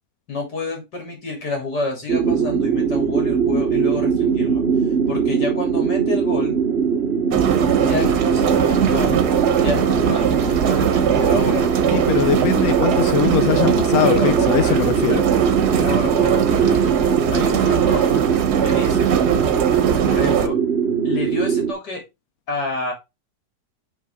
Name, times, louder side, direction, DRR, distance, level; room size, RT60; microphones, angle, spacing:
voice 1, 0.3-4.6 5.1-6.6 7.8-9.2 9.6-11.7 14.0-14.3 14.6-15.3 15.8-16.8 17.3-18.2 18.6-19.1 20.1-20.6 21.0-22.0 22.5-22.9, left 2 dB, 85° left, 3.6 m, -28 dB
sound 1, 2.1-21.7, right 6 dB, 40° right, 1.2 m, -21 dB
sound 2, 7.3-20.5, right 8 dB, 75° right, 1.5 m, -21 dB
voice 2, 11.9-15.2, left 9 dB, 65° left, 1.1 m, -21 dB
6.0 x 5.9 x 3.6 m
omnidirectional pair, 1.7 m